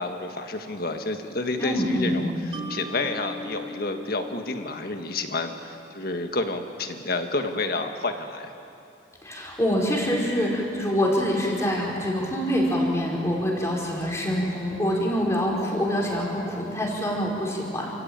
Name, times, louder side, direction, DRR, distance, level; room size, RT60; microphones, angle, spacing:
voice 1, 0.0-8.5, left 2 dB, 60° left, 6 dB, 1.7 m, -30 dB
voice 2, 1.6-2.2 9.2-17.9, equal, 15° left, -2 dB, 4.7 m, -25 dB
Mallet percussion, 2.5-5.8, left 2 dB, 35° right, 2.1 m, -40 dB
28.5 x 15.0 x 8.9 m, 2.7 s
head